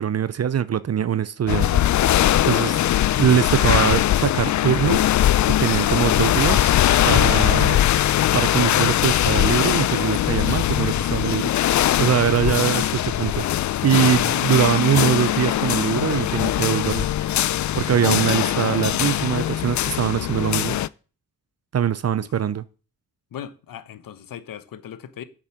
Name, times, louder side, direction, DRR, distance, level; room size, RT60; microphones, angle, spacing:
voice 1, 0.0-1.8 2.4-2.8 3.2-5.0 5.5-6.8 7.0-7.8 8.3-13.5 13.8-17.1 17.7-20.8 21.7-22.6, right 9 dB, 50° right, 0.6 m, -22 dB
sound 1, 1.5-20.9, left 13 dB, 60° left, 0.4 m, -21 dB
voice 2, 23.3-25.2, left 9 dB, 75° left, 0.9 m, -39 dB
8.1 x 6.5 x 6.0 m
supercardioid pair, 45°, 34 cm